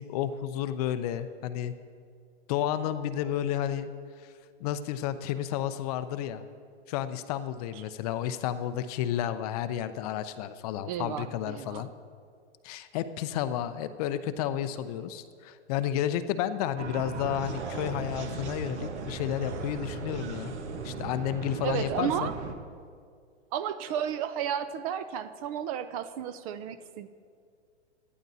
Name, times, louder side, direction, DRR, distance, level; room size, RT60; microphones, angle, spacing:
voice 1, 0.0-1.7 2.5-3.9 4.2-4.3 4.6-6.4 6.9-11.9 12.6-20.5 20.8-22.3, left 11 dB, 35° left, 11 dB, 0.5 m, -31 dB
voice 2, 10.9-11.8 21.6-22.3 23.5-27.1, right 9 dB, 30° right, 12 dB, 0.5 m, -33 dB
sound 1, 16.8-22.5, right 4 dB, 75° right, 1.4 m, -37 dB
18.0 x 12.0 x 2.7 m, 2.1 s
hypercardioid pair, 125°, 35 cm